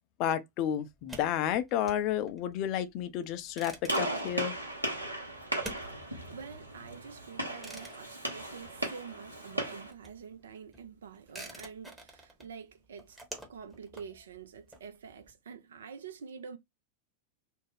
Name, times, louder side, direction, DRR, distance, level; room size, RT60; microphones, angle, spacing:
voice 1, 0.2-4.6, left 10 dB, 40° left, 0.4 m, -31 dB
sound 1, 0.9-9.3 9.5-15.3, right 1 dB, 5° right, 0.9 m, -49 dB
Gunshot gunfire, 3.9-9.9, right 1 dB, 85° right, 0.8 m, -36 dB
voice 2, 6.0-13.2 13.5-16.6, right 6 dB, 65° right, 0.4 m, -47 dB
2.4 x 2.1 x 3.3 m
figure-of-eight pair, 90°, 0 cm